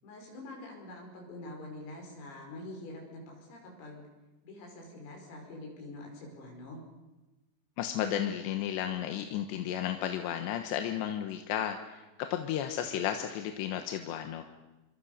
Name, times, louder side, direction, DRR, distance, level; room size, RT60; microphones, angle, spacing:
voice 1, 0.0-4.1 4.4-6.8, left 2 dB, 90° left, 0 dB, 8.0 m, -45 dB
voice 2, 7.8-12.0 12.3-14.4, left 10 dB, 70° left, 6 dB, 3.1 m, -33 dB
27.5 x 24.0 x 6.7 m, 1.1 s
omnidirectional pair, 5.8 m